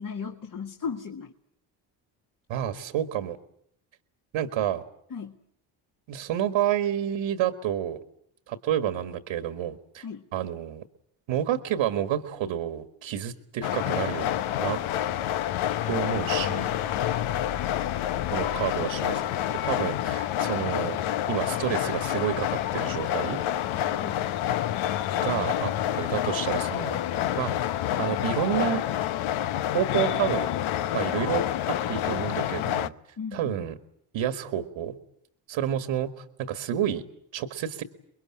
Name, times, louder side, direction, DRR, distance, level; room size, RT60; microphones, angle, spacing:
voice 1, 0.0-1.3 5.1-5.4 10.0-10.3 24.0-24.2 33.2-33.5, left 6 dB, 40° left, 2 dB, 1.9 m, -36 dB
voice 2, 2.5-3.4 4.3-4.8 6.1-8.0 8.5-10.1 10.3-10.8 11.3-14.3 14.6-14.8 15.9-16.7 18.3-19.2 19.6-21.0 21.3-23.4 25.2-27.0 27.4-27.5 28.0-28.8 29.7-30.5 30.9-32.9 33.3-33.8 34.1-35.0 35.5-37.0 37.3-37.8, right 10 dB, 70° right, 9 dB, 1.8 m, -29 dB
sound 1, 13.6-32.9, left 11 dB, 70° left, 1.0 m, -28 dB
25.0 x 21.5 x 8.6 m, 0.72 s
supercardioid pair, 65°, 50 cm